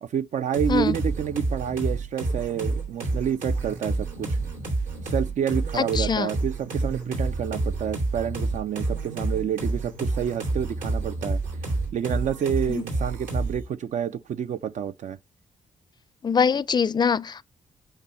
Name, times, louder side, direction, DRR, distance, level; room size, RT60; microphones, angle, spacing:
voice 1, 0.0-4.4 5.1-11.4 11.9-15.2, right 8 dB, 65° right, 0.5 m, -28 dB
sound 1, 0.5-13.7, right 2 dB, 80° right, 3.7 m, -29 dB
voice 2, 5.8-6.3 12.7-12.8 16.2-17.4, left 6 dB, 30° left, 0.4 m, -23 dB
7.2 x 5.4 x 5.6 m
supercardioid pair, 55°, 13 cm